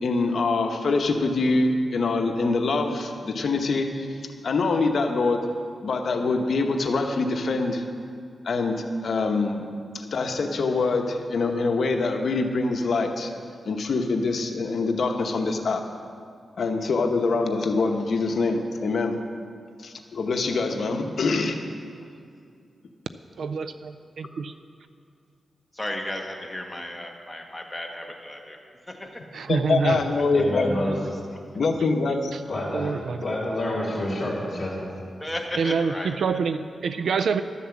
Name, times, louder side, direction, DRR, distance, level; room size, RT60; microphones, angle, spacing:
voice 1, 0.0-4.1 4.4-5.5 5.8-7.8 8.4-9.6 9.9-13.3 13.6-15.8 16.6-19.2 19.8-21.6 29.5-30.8 31.5-32.3, left 3 dB, 65° left, 5 dB, 1.0 m, -24 dB
voice 2, 23.4-23.7 24.2-24.5 29.3-30.0 32.3-32.4 32.7-33.2 35.6-37.4, right 5 dB, 80° right, 10 dB, 0.4 m, -26 dB
voice 3, 25.7-28.6 28.9-29.1 35.2-36.1, left 1 dB, 10° left, 1 dB, 1.4 m, -34 dB
voice 4, 30.3-31.0 32.5-33.0 33.2-34.8, left 1 dB, 30° left, -8 dB, 3.1 m, -28 dB
12.0 x 7.2 x 7.2 m, 2.3 s
wide cardioid pair, 110°, 0 cm